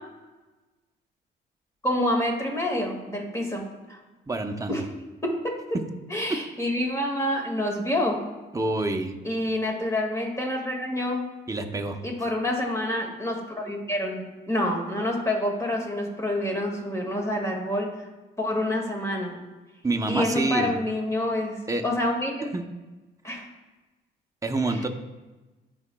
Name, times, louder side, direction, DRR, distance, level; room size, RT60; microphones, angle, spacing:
voice 1, 1.8-4.0 4.7-4.8 5.2-5.8 6.1-8.2 9.2-11.3 12.0-17.9 18.4-19.4 20.1-22.5 23.2-23.5 24.7-24.9, left 1 dB, 15° left, 1 dB, 2.0 m, -27 dB
voice 2, 4.3-4.7 5.7-5.8 6.3-6.4 8.5-9.2 11.5-12.0 19.8-20.8 21.7-21.9 22.5-22.6 24.4-24.9, right 2 dB, 15° right, 5 dB, 0.8 m, -27 dB
13.0 x 5.0 x 2.3 m, 1.2 s
cardioid pair, 90°, 20 cm